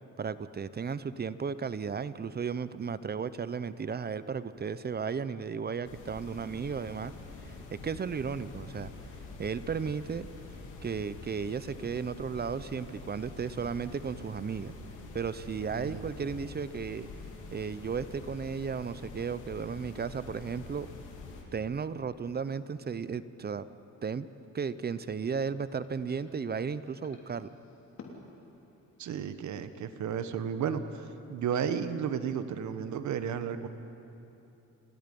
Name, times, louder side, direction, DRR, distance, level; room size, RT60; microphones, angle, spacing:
voice 1, 0.2-7.1 7.4-7.6 7.8-8.9 9.4-10.3 10.8-14.7 15.1-17.1 17.5-20.9 21.5-23.7 24.0-24.3 24.5-27.5, right 6 dB, 35° right, 15 dB, 0.7 m, -34 dB
sound 1, 5.8-21.4, left 3 dB, 85° left, 3.3 m, -46 dB
voice 2, 15.7-16.1 29.0-33.7, right 7 dB, 70° right, 10 dB, 1.3 m, -33 dB
sound 2, 24.6-29.7, left 3 dB, 60° left, 3.3 m, -56 dB
29.5 x 17.5 x 5.4 m, 2.9 s
cardioid pair, 90°, 30 cm